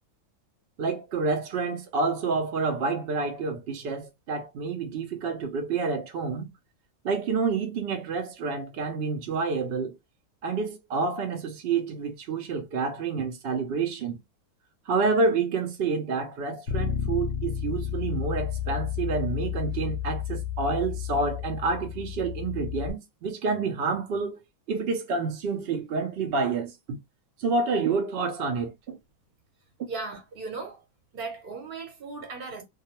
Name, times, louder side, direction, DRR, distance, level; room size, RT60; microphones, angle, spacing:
voice 1, 0.8-6.5 7.0-10.0 10.4-14.2 14.9-24.4 24.7-27.0 27.4-29.0, right 4 dB, 85° right, 0.5 m, -28 dB
Bass guitar, 16.7-22.9, left 9 dB, 65° left, 0.7 m, -31 dB
voice 2, 29.9-30.8 31.1-32.6, right 4 dB, 45° right, 0.9 m, -37 dB
2.3 x 2.3 x 2.8 m
omnidirectional pair, 1.6 m